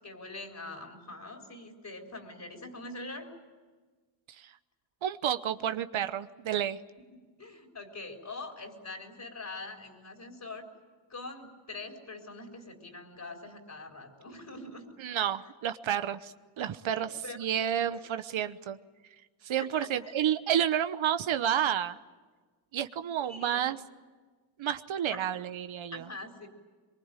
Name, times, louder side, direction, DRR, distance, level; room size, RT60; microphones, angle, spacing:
voice 1, 0.0-3.3 7.4-10.7 11.1-14.9 16.9-17.5 17.9-18.0 19.6-20.2 23.2-23.7 25.1-25.2 25.9-26.5, left 2 dB, 40° left, 2 dB, 3.9 m, -44 dB
voice 2, 5.0-6.8 15.0-17.1 17.4-18.8 19.4-22.0 22.7-23.8 24.6-26.1, right 10 dB, 80° right, 10 dB, 1.0 m, -30 dB
23.5 x 23.0 x 9.0 m, 1.4 s
cardioid pair, 95°, 47 cm